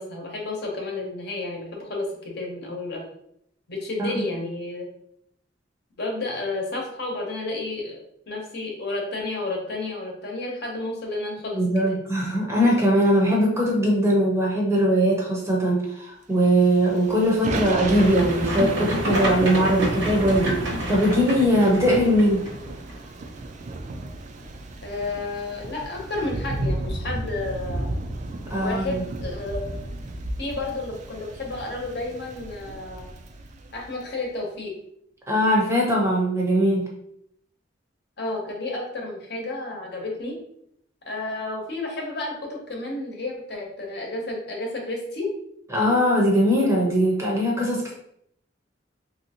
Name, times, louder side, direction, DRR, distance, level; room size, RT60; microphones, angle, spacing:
voice 1, 0.0-3.0 3.7-4.9 6.0-11.6 11.9-12.0 24.8-27.9 28.6-29.8 30.4-33.1 33.7-34.7 38.2-40.4 41.1-45.3, left 2 dB, 60° left, -1 dB, 0.8 m, -31 dB
voice 2, 11.5-22.4 28.5-29.0 35.3-36.9 45.7-47.9, equal, 15° right, -3 dB, 0.7 m, -21 dB
Thunder / Rain, 16.5-34.1, right 2 dB, 40° right, 0.3 m, -33 dB
sound 1, 17.9-22.9, equal, 80° right, 1.1 m, -29 dB
3.2 x 2.7 x 2.8 m, 0.72 s
head